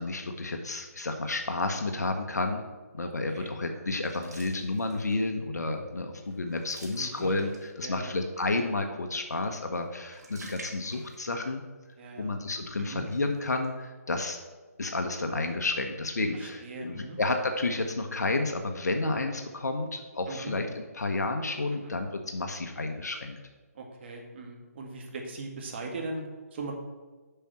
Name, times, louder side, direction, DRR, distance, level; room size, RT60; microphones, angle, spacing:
voice 1, 0.0-2.6 2.9-7.5 7.8-11.6 12.2-14.4 14.8-20.7 20.9-23.4, left 2 dB, 80° left, 5 dB, 1.1 m, -31 dB
sound 1, 4.0-5.3 5.7-5.9 6.2-8.0 9.7-11.5 11.8-11.9 12.8-13.7, right 2 dB, 80° right, 2.5 m, -48 dB
voice 2, 7.0-7.3 7.8-8.1 12.0-12.3 12.8-13.0 16.3-17.2 20.3-20.6 21.8-21.9 23.7-26.7, right 3 dB, 40° right, 2 dB, 1.9 m, -40 dB
7.0 x 5.9 x 7.5 m, 1.3 s
hypercardioid pair, 155°, 9 cm